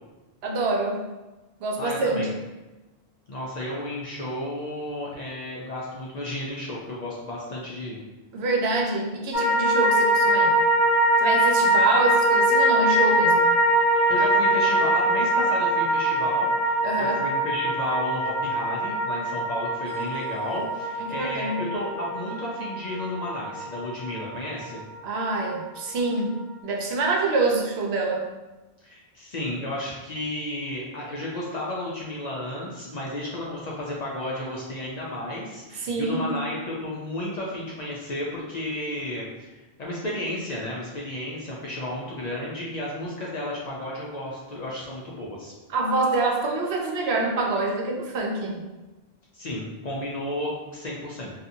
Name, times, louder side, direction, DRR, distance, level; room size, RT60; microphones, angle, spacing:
voice 1, 0.4-1.0 1.6-2.3 8.3-10.6 11.2-13.5 16.8-17.2 21.0-21.6 25.0-26.4 26.6-28.2 35.8-36.3 45.7-48.6, right 3 dB, 80° right, 0 dB, 0.8 m, -26 dB
voice 2, 1.8-2.3 3.3-8.0 14.1-24.8 28.8-45.5 49.3-51.3, left 1 dB, 55° left, -4 dB, 0.5 m, -33 dB
sound 1, 9.3-25.7 26.0-26.1, right 1 dB, 30° right, 0.8 m, -23 dB
2.7 x 2.4 x 2.6 m, 1.1 s
omnidirectional pair, 1.1 m